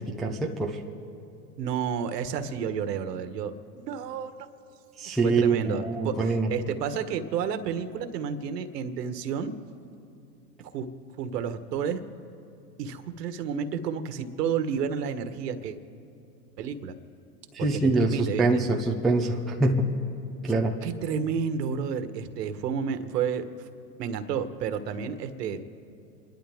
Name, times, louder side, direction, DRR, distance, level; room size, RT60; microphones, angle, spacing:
voice 1, 0.2-0.8 5.0-6.5 17.5-19.9 20.5-20.8, right 3 dB, ahead, -1 dB, 0.4 m, -24 dB
voice 2, 1.6-3.5 3.9-4.3 5.0-9.5 10.7-10.9 11.2-12.0 12.8-15.8 16.6-16.9 17.6-18.6 20.4-20.5 20.8-23.7 24.0-25.6, right 7 dB, 70° right, 10 dB, 1.4 m, -31 dB
29.0 x 12.0 x 3.6 m, 2.7 s
hypercardioid pair, 120°, 50 cm